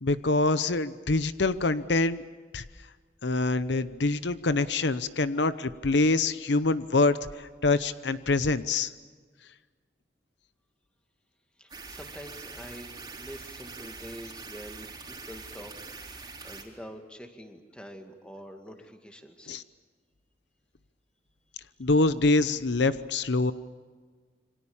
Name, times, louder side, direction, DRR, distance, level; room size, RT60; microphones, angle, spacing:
voice 1, 0.0-2.2 2.5-2.6 3.2-8.9 19.5-19.6 21.8-23.5, left 3 dB, 75° left, 13 dB, 0.8 m, -25 dB
voice 2, 11.6-15.7 16.0-19.6, equal, 5° left, 5 dB, 2.1 m, -46 dB
sound 1, 11.7-16.6, right 4 dB, 20° right, 3.8 m, -43 dB
28.0 x 25.0 x 7.2 m, 1.5 s
head